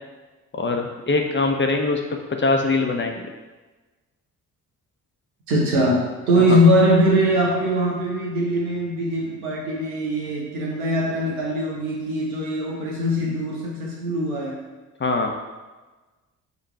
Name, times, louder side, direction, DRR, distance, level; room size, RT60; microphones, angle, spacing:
voice 1, 0.5-3.2 6.5-6.6 15.0-15.3, left 3 dB, 25° left, 2 dB, 0.9 m, -22 dB
voice 2, 5.5-6.0 6.3-14.6, equal, 85° right, -3 dB, 1.1 m, -21 dB
6.7 x 3.1 x 4.5 m, 1.2 s
figure-of-eight pair, 40°, 42 cm